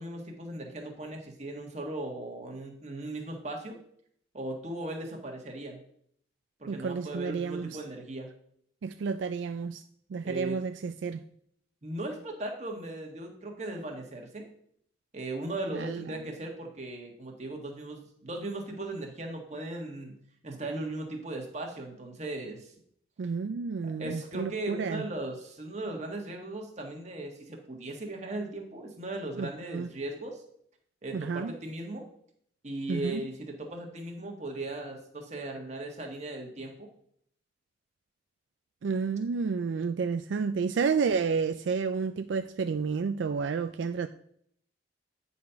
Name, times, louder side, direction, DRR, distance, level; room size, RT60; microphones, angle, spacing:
voice 1, 0.0-3.8 4.3-5.8 6.6-8.3 10.2-10.6 11.8-14.5 15.1-20.2 20.4-22.7 24.0-30.4 31.0-32.0 32.6-36.9, right 2 dB, 35° right, 1.5 m, -38 dB
voice 2, 6.7-7.8 8.8-9.8 10.1-11.2 15.7-16.1 23.2-25.0 29.4-29.9 31.1-31.6 32.9-33.2 38.8-44.1, right 5 dB, 70° right, 0.4 m, -31 dB
9.6 x 4.2 x 5.6 m
head